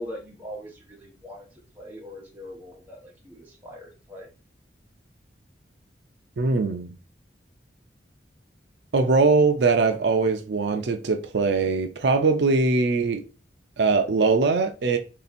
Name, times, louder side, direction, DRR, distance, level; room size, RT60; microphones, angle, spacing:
voice 1, 0.0-4.3, equal, 10° right, 1.3 m, -41 dB
voice 2, 6.4-6.9 8.9-13.2 13.8-15.0, right 4 dB, 75° right, 0.5 m, -21 dB
3.4 x 2.7 x 4.0 m
head